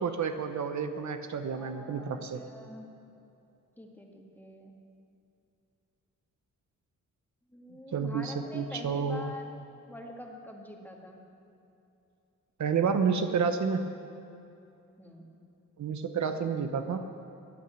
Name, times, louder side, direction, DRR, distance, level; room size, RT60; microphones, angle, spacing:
voice 1, 0.0-2.4 7.9-9.3 12.6-14.0 15.8-17.1, right 6 dB, 65° right, 7 dB, 0.9 m, -30 dB
voice 2, 1.5-2.9 3.8-4.8 7.5-9.5 9.9-11.2 15.0-15.4 16.2-16.5, left 1 dB, 5° left, 0 dB, 1.9 m, -45 dB
14.5 x 9.4 x 8.8 m, 2.7 s
wide cardioid pair, 105°, 31 cm